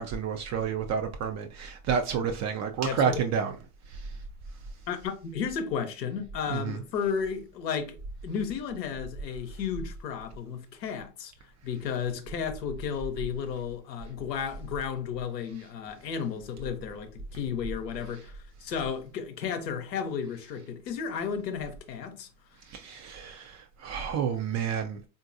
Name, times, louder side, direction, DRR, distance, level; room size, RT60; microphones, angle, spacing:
voice 1, 0.0-3.5 3.9-4.1 6.5-6.8 22.7-25.0, right 7 dB, 35° right, 0.4 m, -30 dB
voice 2, 2.8-3.2 4.9-11.3 11.6-22.3, left 7 dB, 85° left, 0.8 m, -33 dB
3.7 x 2.6 x 2.5 m
hypercardioid pair, 75°, 49 cm